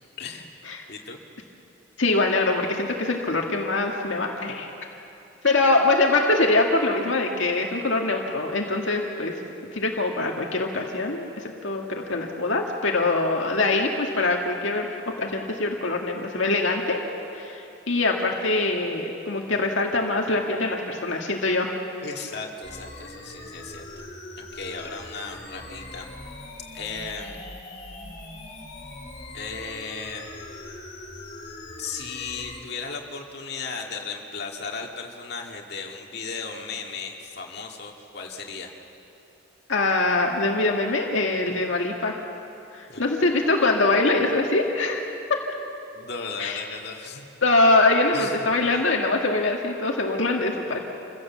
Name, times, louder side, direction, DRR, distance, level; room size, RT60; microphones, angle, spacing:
voice 1, 0.2-0.6 0.9-1.2 22.0-23.8 24.5-26.1 26.7-27.4 29.3-30.3 31.8-38.7 42.9-43.0 45.9-47.2 48.1-48.8, left 4 dB, 50° left, 1 dB, 2.1 m, -36 dB
voice 2, 2.0-4.7 5.4-9.3 9.7-14.9 15.2-17.0 17.3-21.7 39.7-42.2 42.7-45.0 46.4-46.6 47.4-50.8, left 2 dB, 70° left, 1 dB, 1.8 m, -23 dB
sound 1, 22.6-32.6, left 2 dB, 35° left, 2.9 m, -41 dB
27.0 x 16.0 x 7.4 m, 2.9 s
head